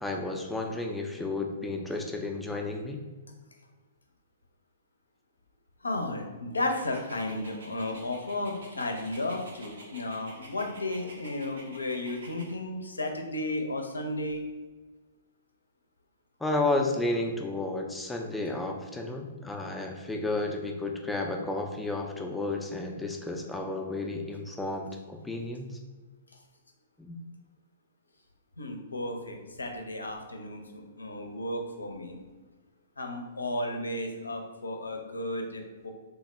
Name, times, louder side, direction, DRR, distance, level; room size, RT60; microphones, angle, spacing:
voice 1, 0.0-3.0 16.4-25.8 27.0-27.2, left 2 dB, 5° left, 2 dB, 0.4 m, -32 dB
voice 2, 5.8-14.5 28.6-32.2 33.0-35.9, left 1 dB, 80° left, 3 dB, 0.4 m, -34 dB
Dog, 6.5-12.5, right 1 dB, 70° right, 0.7 m, -49 dB
3.4 x 2.1 x 3.2 m, 1.3 s
figure-of-eight pair, 115°, 0 cm